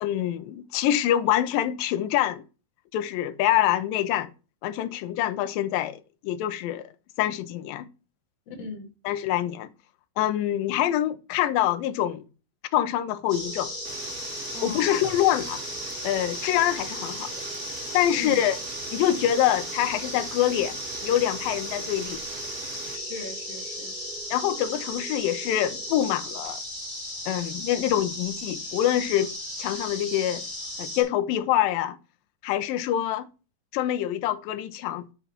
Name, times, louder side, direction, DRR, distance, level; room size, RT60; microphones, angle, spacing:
voice 1, 0.0-2.4 2.9-4.3 4.6-6.8 7.2-7.9 9.1-9.7 10.2-12.3 12.7-13.7 14.6-15.6 16.0-17.4 17.9-18.6 18.9-22.2 24.3-26.6 27.3-29.3 29.6-30.4 30.8-32.0 32.4-33.3 33.7-35.1, left 12 dB, 80° left, 2.3 m, -25 dB
voice 2, 8.5-8.9 14.5-15.0 18.1-18.5 22.9-24.0, left 3 dB, 50° left, 2.8 m, -39 dB
sound 1, 13.3-31.0, left 1 dB, 10° left, 2.3 m, -36 dB
sound 2, 13.4-26.6, right 5 dB, 65° right, 2.8 m, -46 dB
sound 3, 13.8-23.0, right 10 dB, 85° right, 2.8 m, -43 dB
11.0 x 5.8 x 3.0 m
omnidirectional pair, 4.3 m